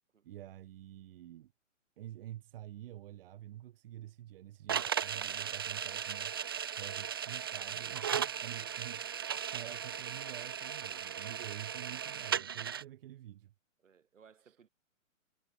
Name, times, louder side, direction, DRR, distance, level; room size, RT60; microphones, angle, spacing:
voice 1, 0.2-1.5 2.0-6.4 6.8-13.5 14.5-14.6, right 13 dB, 45° right, 1.8 m, -48 dB
sound 1, 4.7-12.8, right 8 dB, 20° right, 0.4 m, -37 dB
voice 2, 12.0-12.5 13.8-14.7, right 7 dB, 70° right, 5.3 m, -62 dB
hypercardioid pair, 135°, 39 cm